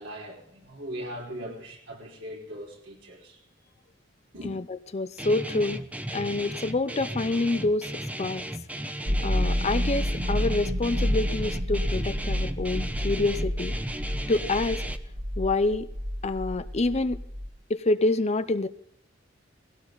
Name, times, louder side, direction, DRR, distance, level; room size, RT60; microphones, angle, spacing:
voice 1, 0.0-3.4 4.3-4.5, equal, 75° right, 5.1 m, -39 dB
voice 2, 4.4-5.8 6.1-7.9 8.2-8.4 9.2-13.7 14.3-14.8 15.4-15.9 16.2-17.2 17.7-18.7, left 2 dB, 35° left, 0.6 m, -27 dB
Guitar, 5.2-15.0, right 1 dB, 10° right, 0.9 m, -35 dB
sound 1, 9.1-17.5, equal, 50° right, 1.9 m, -29 dB
18.5 x 17.0 x 4.0 m
head